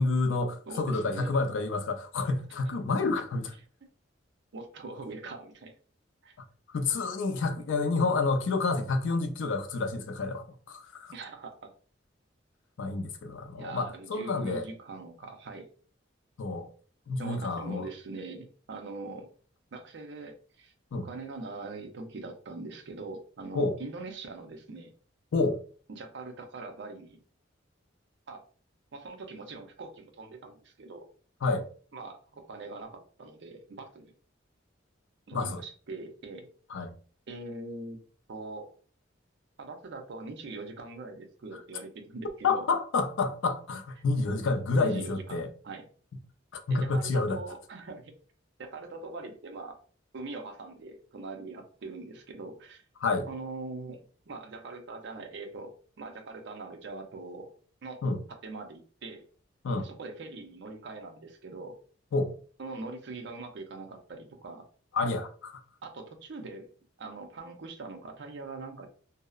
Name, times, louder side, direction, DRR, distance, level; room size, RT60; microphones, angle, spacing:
voice 1, 0.0-3.5 6.7-11.1 12.8-14.7 16.4-16.7 17.1-17.9 20.9-21.1 23.5-23.7 25.3-25.6 31.4-31.7 35.3-35.6 36.7-36.9 42.4-45.5 46.5-47.4 53.0-53.3 58.0-58.2 59.6-59.9 62.1-62.3 64.9-65.6, left 3 dB, 75° left, 0.4 m, -29 dB
voice 2, 0.7-1.3 4.5-5.7 6.2-6.4 11.1-11.7 13.5-15.7 17.2-19.3 19.7-24.9 25.9-27.2 28.3-28.4 28.9-31.1 31.9-34.1 35.3-36.5 37.3-38.0 38.3-38.7 39.6-42.7 44.8-45.9 46.7-48.1 48.6-49.8 50.1-52.8 53.3-54.0 54.3-57.5 57.8-58.0 58.4-59.2 59.8-61.8 62.6-64.6 65.8-66.7 67.0-68.9, right 3 dB, 65° right, 0.5 m, -42 dB
2.7 x 2.0 x 2.3 m
head